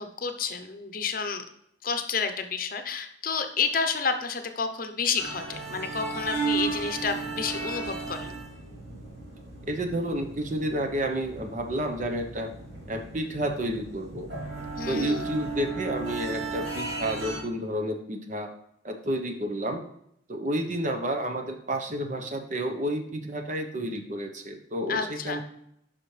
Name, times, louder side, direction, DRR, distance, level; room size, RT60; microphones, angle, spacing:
voice 1, 0.0-1.5 1.8-8.4 14.8-15.2 24.9-25.4, left 5 dB, 50° left, 7 dB, 0.8 m, -30 dB
sound 1, 5.2-17.4, right 4 dB, 85° right, 3.6 m, -35 dB
voice 2, 9.7-12.5 12.9-14.3 14.9-18.5 18.8-19.8 20.3-25.4, right 1 dB, 40° right, 5 dB, 0.9 m, -30 dB
9.7 x 5.8 x 3.3 m, 0.74 s
head